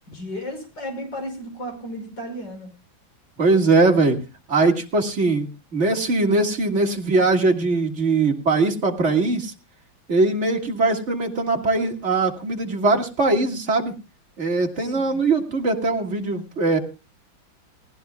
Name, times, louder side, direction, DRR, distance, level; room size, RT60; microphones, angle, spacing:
voice 1, 0.1-2.7 14.8-15.1, equal, 60° left, 3 dB, 6.2 m, -34 dB
voice 2, 3.4-4.2 4.5-9.5 10.1-13.9 14.4-16.8, right 3 dB, 35° right, 2 dB, 2.0 m, -21 dB
18.5 x 17.5 x 2.3 m, 0.31 s
omnidirectional pair, 2.2 m